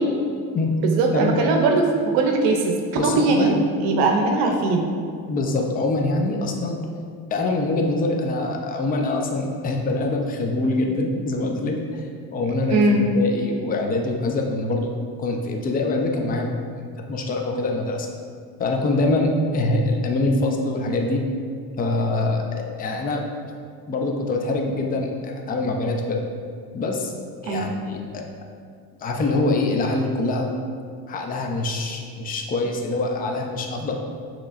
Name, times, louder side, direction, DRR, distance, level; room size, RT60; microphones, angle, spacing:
voice 1, 0.9-1.9 2.1-2.8 3.0-3.6 3.8-4.8 12.7-13.0 27.4-27.7, right 3 dB, 80° right, 2 dB, 0.6 m, -20 dB
voice 2, 2.9-3.6 4.4-4.5 5.3-6.8 7.3-14.9 15.2-16.5 17.0-18.1 18.6-21.2 21.8-23.2 23.9-26.2 26.7-27.1 27.4-28.2 29.0-30.5 31.1-34.0, left 2 dB, 25° left, 2 dB, 0.4 m, -24 dB
6.3 x 3.0 x 2.4 m, 2.2 s
cardioid pair, 100°, 39 cm